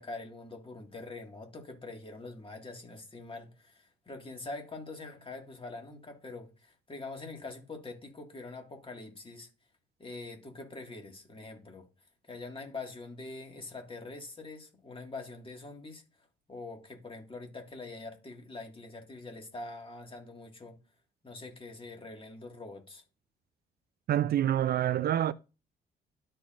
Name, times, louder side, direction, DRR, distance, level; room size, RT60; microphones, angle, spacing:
voice 1, 0.0-9.5 10.0-11.9 12.2-16.0 16.5-20.8 21.2-23.0, left 3 dB, 25° left, 2.0 m, -44 dB
voice 2, 24.1-25.3, right 11 dB, 50° right, 0.4 m, -27 dB
13.0 x 4.4 x 2.5 m
cardioid pair, 90°, 20 cm